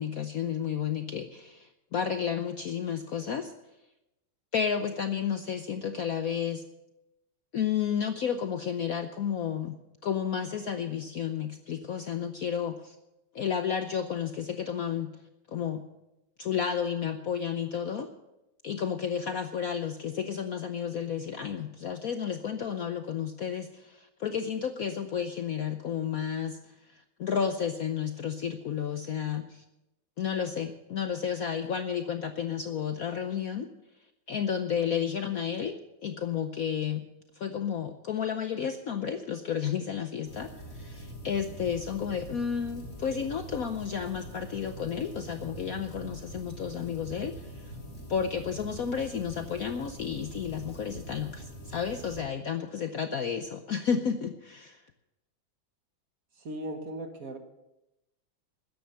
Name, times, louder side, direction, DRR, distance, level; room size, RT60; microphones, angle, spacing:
voice 1, 0.0-3.5 4.5-6.6 7.5-13.0 13.3-15.1 15.5-15.8 16.4-18.1 18.6-26.6 26.9-29.6 30.2-33.7 34.3-35.8 36.0-37.0 37.4-47.7 48.1-54.8, left 7 dB, 65° left, 8 dB, 0.9 m, -32 dB
sound 1, 40.3-52.2, right 1 dB, 35° left, 3.7 m, -44 dB
voice 2, 56.4-57.4, right 1 dB, 45° right, 6 dB, 1.6 m, -37 dB
13.5 x 10.5 x 6.7 m, 0.93 s
omnidirectional pair, 2.2 m